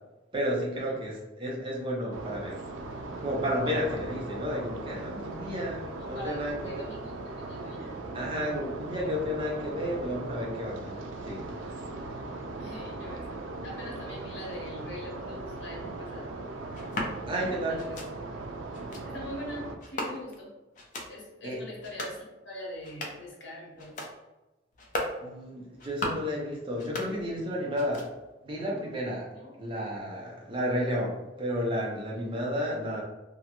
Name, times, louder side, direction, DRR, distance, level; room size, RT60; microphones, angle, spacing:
voice 1, 0.3-2.6 3.2-6.9 8.1-11.5 17.3-17.8 21.4-21.6 25.2-28.1 28.4-29.3 29.6-33.0, equal, 25° right, -2 dB, 0.5 m, -32 dB
sound 1, 2.1-19.8, right 2 dB, 90° right, 0.3 m, -39 dB
voice 2, 6.0-7.9 12.6-16.3 17.4-18.0 19.0-20.5 21.1-24.0 29.3-29.6 32.2-32.3, left 1 dB, 70° left, -3 dB, 0.9 m, -43 dB
sound 2, 16.7-17.1 17.8-18.1 18.7-19.0 19.8-20.4 20.7-21.1 21.7-22.2 22.7-23.3 23.8-24.1 24.7-25.2 25.7-26.3 26.7-27.5 27.7-28.3, left 1 dB, 40° left, 0.4 m, -37 dB
2.4 x 2.1 x 2.8 m, 1.1 s
head